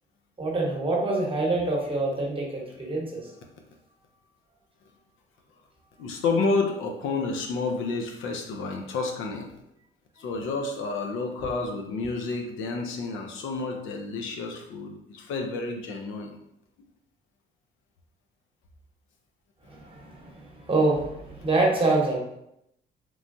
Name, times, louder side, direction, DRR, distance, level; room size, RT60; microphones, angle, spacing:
voice 1, 0.4-3.3 10.2-10.3 11.4-11.5 19.6-22.2, right 2 dB, 25° right, -2 dB, 1.0 m, -26 dB
voice 2, 6.0-9.5 10.2-16.4, left 3 dB, 85° left, 3 dB, 0.5 m, -30 dB
3.1 x 2.2 x 2.6 m, 0.80 s
cardioid pair, 90°, 20 cm